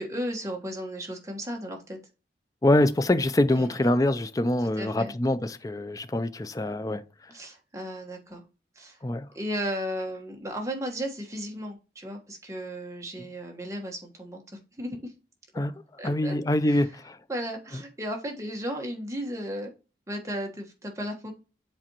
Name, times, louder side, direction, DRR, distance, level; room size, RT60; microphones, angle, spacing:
voice 1, 0.0-2.0 3.5-3.9 4.6-5.1 7.3-8.4 8.7-9.0 9.3-14.4 14.8-15.1 16.0-16.3 16.6-16.9 17.3-19.7 20.1-21.3, equal, 15° right, 1.3 m, -35 dB
voice 2, 2.6-7.0 9.0-9.3 15.6-15.7 16.0-17.2, left 1 dB, 20° left, 0.4 m, -24 dB
7.4 x 4.3 x 2.9 m
head